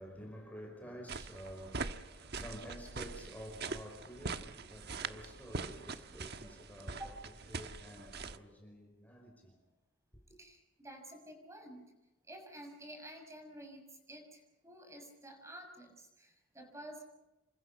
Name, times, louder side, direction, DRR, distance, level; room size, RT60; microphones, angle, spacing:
voice 1, 0.0-7.1 7.5-9.5, equal, 10° left, 5.1 m, -50 dB
sound 1, 1.1-8.4, right 4 dB, 60° right, 1.3 m, -43 dB
voice 2, 10.4-11.9 12.3-17.0, right 1 dB, 15° right, 6.6 m, -51 dB
28.5 x 25.0 x 5.8 m
head